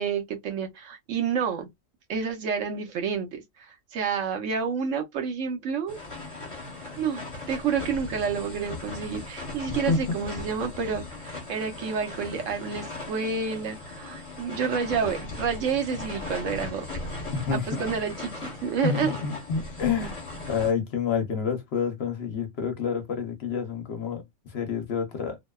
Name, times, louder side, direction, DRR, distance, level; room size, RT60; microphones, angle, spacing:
voice 1, 0.0-1.7 2.1-6.0 7.0-17.1 17.5-19.1, right 6 dB, 75° right, 1.1 m, -29 dB
sound 1, 5.9-20.7, left 2 dB, 25° left, 1.2 m, -38 dB
voice 2, 9.7-10.2 17.3-17.8 18.8-25.4, left 6 dB, 60° left, 0.8 m, -28 dB
2.7 x 2.1 x 2.2 m
omnidirectional pair, 1.3 m